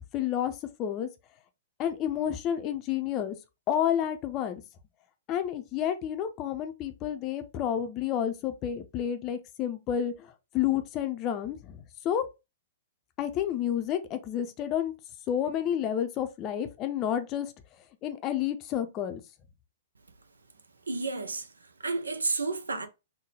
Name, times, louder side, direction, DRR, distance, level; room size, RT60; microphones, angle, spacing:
voice 1, 0.1-1.1 1.8-3.4 3.7-4.6 5.3-12.2 13.2-14.9 15.3-19.2, left 10 dB, 30° left, 0.5 m, -30 dB
voice 2, 20.9-21.5 21.8-22.9, right 3 dB, 75° right, 0.6 m, -31 dB
3.7 x 2.2 x 3.1 m
figure-of-eight pair, 110°, 0 cm